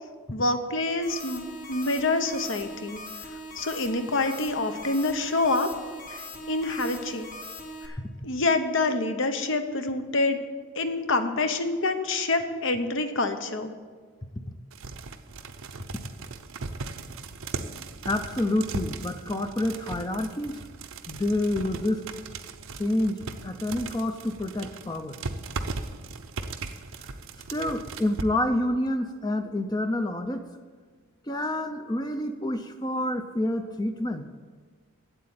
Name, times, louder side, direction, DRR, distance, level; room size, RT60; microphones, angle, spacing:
voice 1, 0.3-1.4 1.7-3.0 3.6-5.7 6.1-7.3 7.8-8.0 8.2-10.4 10.8-13.7, left 2 dB, 60° left, 8 dB, 1.0 m, -26 dB
sound 1, 1.0-7.9, left 1 dB, 40° left, 1.5 m, -41 dB
sound 2, 14.7-28.2, right 3 dB, 75° right, 0.7 m, -38 dB
voice 2, 18.0-20.6 21.1-22.0 22.8-25.2 27.5-30.4 31.3-34.2, left 1 dB, 20° left, 7 dB, 0.5 m, -28 dB
8.5 x 8.1 x 8.9 m, 1.5 s
head